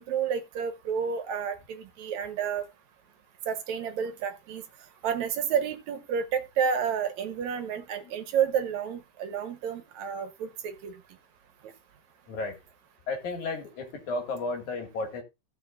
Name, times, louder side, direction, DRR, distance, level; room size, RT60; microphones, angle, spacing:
voice 1, 0.0-2.6 3.5-4.6 5.0-10.9, right 7 dB, 75° right, 2.3 m, -30 dB
voice 2, 12.3-12.6 13.1-15.2, left 3 dB, 75° left, 3.4 m, -33 dB
17.0 x 6.2 x 2.5 m
omnidirectional pair, 3.4 m